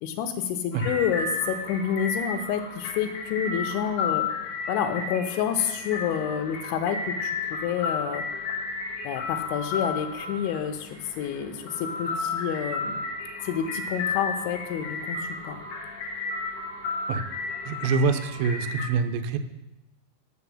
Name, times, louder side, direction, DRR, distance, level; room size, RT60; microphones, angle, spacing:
voice 1, 0.0-4.3 4.7-7.3 7.6-8.2 9.0-10.9 11.2-13.0 13.4-15.2 15.4-15.6, left 8 dB, 80° left, 7 dB, 3.1 m, -28 dB
sound 1, 0.7-18.9, left 4 dB, 65° left, 2.1 m, -33 dB
voice 2, 17.7-19.4, right 5 dB, 80° right, 8 dB, 2.7 m, -25 dB
6.9 x 6.8 x 7.0 m, 0.93 s
omnidirectional pair, 5.5 m